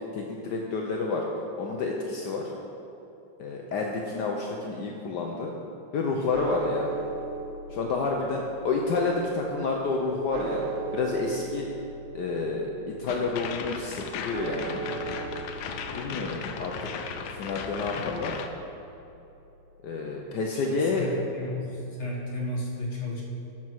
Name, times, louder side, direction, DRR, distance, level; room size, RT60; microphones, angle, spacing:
voice 1, 0.1-1.3 1.6-2.5 3.4-5.5 5.9-6.9 7.7-10.6 10.9-11.7 12.1-14.8 15.9-16.9 17.3-18.4 19.8-21.1, left 3 dB, 65° left, 0 dB, 1.2 m, -29 dB
sound 1, 6.3-20.6, right 5 dB, 85° right, 0.7 m, -40 dB
sound 2, 13.1-18.5, left 6 dB, 85° left, 1.5 m, -36 dB
voice 2, 20.5-23.2, left 1 dB, 40° left, -3 dB, 1.5 m, -34 dB
11.5 x 6.1 x 4.6 m, 2.9 s
omnidirectional pair, 2.1 m